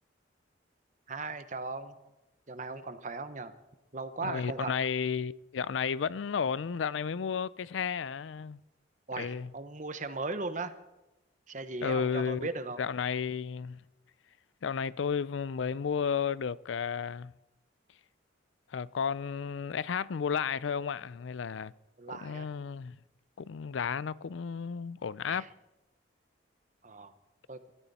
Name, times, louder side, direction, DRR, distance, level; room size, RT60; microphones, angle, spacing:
voice 1, 1.1-2.0 2.5-3.5 3.9-4.7 9.1-10.7 11.5-12.8 22.0-22.5 25.3-25.5 26.8-27.1 27.5-27.7, right 3 dB, 40° right, 1.1 m, -38 dB
voice 2, 4.2-8.6 9.2-9.5 11.8-12.5 12.8-13.8 14.6-17.3 18.7-21.7 22.2-23.0 23.4-25.5, left 6 dB, 80° left, 0.4 m, -33 dB
23.5 x 13.5 x 4.2 m
head